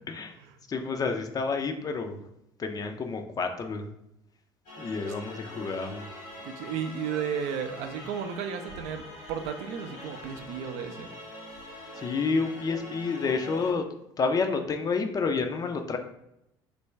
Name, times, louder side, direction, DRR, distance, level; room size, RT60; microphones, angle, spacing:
voice 1, 0.7-2.2 2.6-3.9 4.8-6.1 12.0-13.8 14.2-16.0, left 4 dB, 30° left, 6 dB, 0.4 m, -29 dB
sound 1, 4.7-13.7, left 1 dB, 70° left, 1.1 m, -44 dB
voice 2, 6.4-11.1, right 7 dB, 60° right, 7 dB, 0.4 m, -34 dB
3.2 x 2.2 x 3.3 m, 0.83 s
hypercardioid pair, 60°, 13 cm